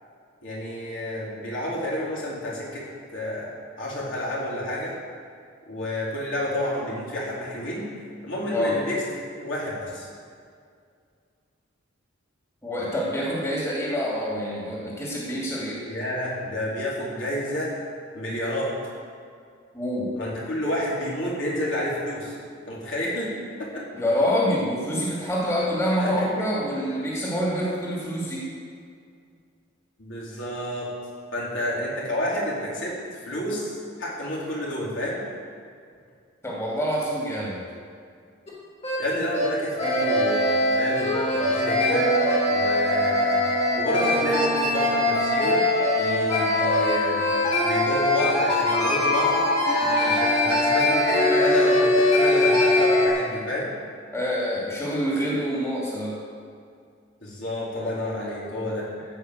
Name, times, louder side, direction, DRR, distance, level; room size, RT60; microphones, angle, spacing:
voice 1, 0.4-2.8 3.1-3.5 3.8-4.9 5.7-7.8 8.2-9.0 9.4-10.1 15.9-17.7 18.1-18.7 20.2-22.3 22.7-23.3 23.6-23.8 26.0-26.4 30.0-30.9 31.3-35.2 39.0-42.0 42.5-43.4 43.8-45.6 46.0-47.3 47.6-49.5 50.0-53.7 57.2-58.9, left 1 dB, 70° left, -6 dB, 4.0 m, -29 dB
voice 2, 12.6-15.8 19.7-20.1 23.9-28.4 36.4-37.6 49.8-50.2 54.1-56.2, equal, 15° left, -5 dB, 2.5 m, -26 dB
sound 1, 38.5-38.6 38.8-39.0 39.3-39.5 39.8-53.1, left 1 dB, 35° left, 3.5 m, -22 dB
15.5 x 5.7 x 8.1 m, 2.2 s
head